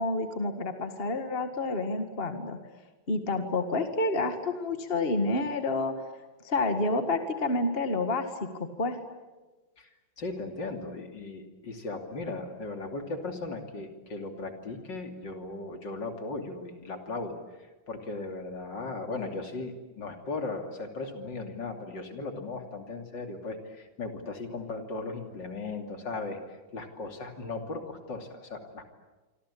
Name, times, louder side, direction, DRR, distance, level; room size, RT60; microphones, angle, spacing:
voice 1, 0.0-2.6 3.1-6.0 6.4-8.3 8.6-9.0, left 2 dB, 30° left, 7 dB, 2.0 m, -29 dB
voice 2, 10.2-28.9, left 3 dB, 60° left, 5 dB, 3.5 m, -37 dB
27.0 x 25.5 x 8.6 m, 1.2 s
omnidirectional pair, 2.2 m